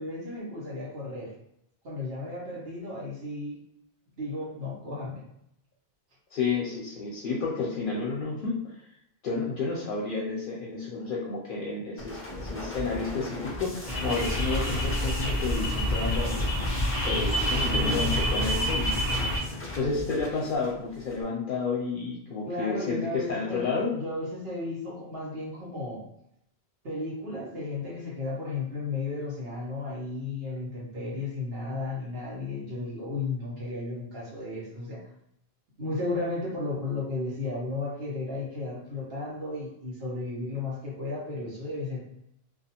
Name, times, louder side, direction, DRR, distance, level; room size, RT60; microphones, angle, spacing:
voice 1, 0.0-1.3 1.8-3.6 4.2-5.2 17.7-18.4 22.4-26.0 26.8-35.0 35.8-42.0, left 3 dB, 70° right, -6 dB, 1.2 m, -34 dB
voice 2, 6.3-8.8 9.2-16.4 17.0-23.9, left 4 dB, 60° left, -3 dB, 0.7 m, -31 dB
sound 1, 12.0-21.2, left 1 dB, 20° left, 0.4 m, -38 dB
sound 2, 13.9-19.4, equal, 20° right, 1.1 m, -27 dB
2.4 x 2.3 x 2.8 m, 0.75 s
omnidirectional pair, 1.0 m